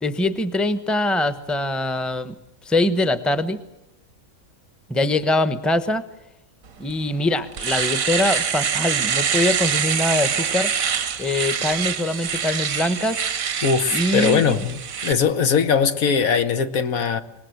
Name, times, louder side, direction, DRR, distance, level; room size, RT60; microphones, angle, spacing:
voice 1, 0.0-2.3 2.6-3.6 4.9-6.0 6.8-10.7 11.2-13.3 13.9-14.6, left 1 dB, ahead, 0.9 m, -23 dB
Domestic sounds home sounds, 6.9-7.0 7.4-15.1, right 7 dB, 75° right, 1.5 m, -25 dB
voice 2, 13.6-17.2, left 6 dB, 75° left, 1.6 m, -20 dB
25.5 x 19.5 x 7.9 m
omnidirectional pair, 1.5 m